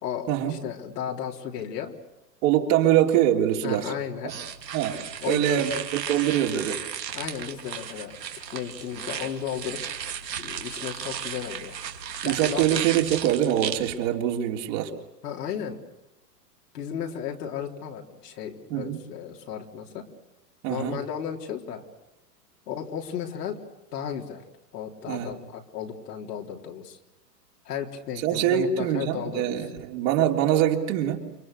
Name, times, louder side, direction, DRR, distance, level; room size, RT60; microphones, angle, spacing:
voice 1, 0.0-1.9 3.6-4.3 5.2-5.7 7.1-10.0 10.4-11.8 12.2-12.7 15.2-15.8 16.7-20.1 20.7-21.8 22.7-23.6 23.9-24.4 24.7-27.0 27.6-29.5, left 8 dB, 70° left, 1 dB, 3.9 m, -34 dB
voice 2, 2.4-3.9 4.2-4.3 4.7-5.0 5.3-6.8 12.2-14.9 18.7-19.0 20.6-21.0 25.1-25.3 28.2-31.2, right 11 dB, 50° right, 1 dB, 3.6 m, -24 dB
sound 1, 4.3-14.0, right 8 dB, 80° right, 2.5 m, -35 dB
29.0 x 25.0 x 6.8 m, 1.0 s
hypercardioid pair, 110°, 49 cm